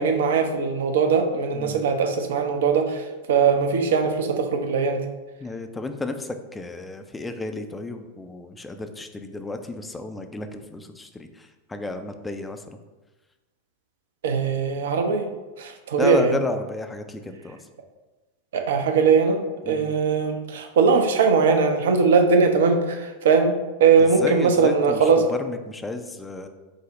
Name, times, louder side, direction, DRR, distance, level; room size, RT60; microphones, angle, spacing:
voice 1, 0.0-5.0 14.2-15.3 15.6-16.4 18.5-23.5 23.8-25.3, right 5 dB, 60° right, 6 dB, 0.5 m, -20 dB
voice 2, 5.4-12.6 16.0-17.6 19.6-19.9 24.0-26.5, left 3 dB, 10° left, 7 dB, 0.3 m, -32 dB
5.1 x 2.0 x 3.8 m, 1.2 s
figure-of-eight pair, 90°, 0 cm